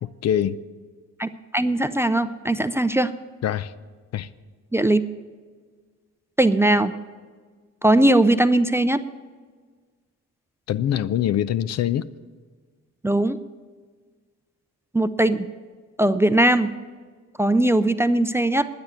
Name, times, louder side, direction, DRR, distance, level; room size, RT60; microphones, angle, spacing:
voice 1, 0.0-0.6 3.4-3.7 4.1-4.3 10.7-12.1, left 10 dB, 60° left, 0.5 m, -24 dB
voice 2, 1.2-3.1 4.7-5.0 6.4-6.9 7.8-9.0 13.0-13.4 14.9-15.5 16.0-16.7 17.4-18.7, right 1 dB, 10° right, 0.4 m, -19 dB
10.5 x 9.5 x 7.7 m
cardioid pair, 90°, 30 cm